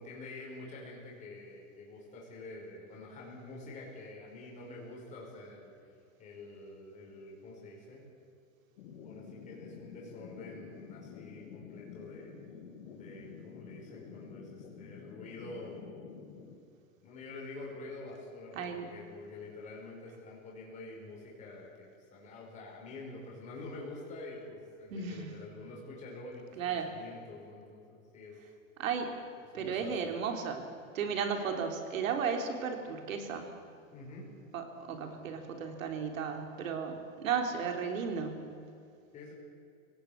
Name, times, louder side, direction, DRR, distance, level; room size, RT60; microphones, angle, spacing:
voice 1, 0.0-5.7 6.2-8.1 9.0-12.3 12.9-16.1 17.0-28.3 29.5-30.1 33.9-34.3 39.1-39.3, left 2 dB, 20° left, -3 dB, 5.3 m, -47 dB
sound 1, 8.8-16.6, left 6 dB, 55° left, 3.0 m, -49 dB
voice 2, 18.6-18.9 24.9-25.3 26.6-26.9 28.8-29.1 29.5-30.6 30.9-33.5 34.5-38.5, right 6 dB, 75° right, 4 dB, 3.8 m, -34 dB
24.0 x 18.0 x 8.6 m, 2.4 s
supercardioid pair, 175°, 41 cm